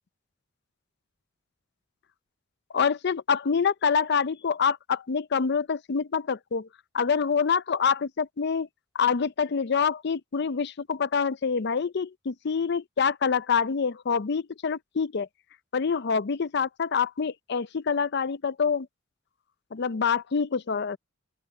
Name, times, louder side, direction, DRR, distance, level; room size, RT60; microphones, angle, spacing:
voice 1, 2.7-6.7 6.9-8.7 8.9-15.3 15.7-18.9 19.7-21.0, left 6 dB, 55° left, 0.5 m, -26 dB
open air
head